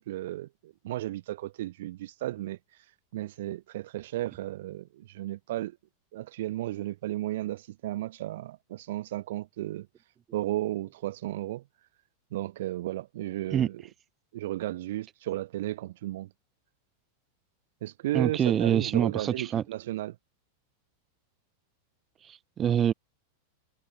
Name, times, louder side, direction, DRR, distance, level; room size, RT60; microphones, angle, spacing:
voice 1, 0.0-2.8 3.1-5.8 6.1-9.9 10.3-11.7 12.3-13.9 14.3-16.3 17.8-20.2, right 15 dB, 55° right, 0.9 m, -34 dB
voice 2, 18.1-19.6 22.2-22.9, right 9 dB, 25° right, 1.0 m, -25 dB
figure-of-eight pair, 90°, 0 cm